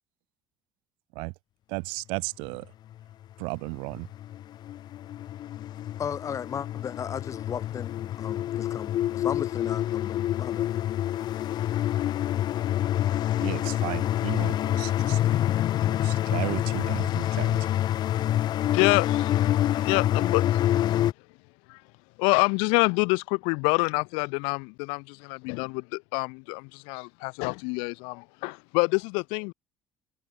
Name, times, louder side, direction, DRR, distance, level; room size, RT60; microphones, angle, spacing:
voice 1, 1.7-2.7 3.4-4.1 13.4-15.2 15.8-17.6, right 30 dB, 85° right, 3.2 m, -34 dB
sound 1, 2.9-3.0 3.7-21.1, left 12 dB, 55° left, 1.8 m, -27 dB
voice 2, 6.0-10.8, left 7 dB, 40° left, 6.1 m, -36 dB
voice 3, 18.7-20.9 21.7-21.8 22.2-29.5, left 33 dB, 85° left, 2.0 m, -27 dB
cardioid pair, 110°, 9 cm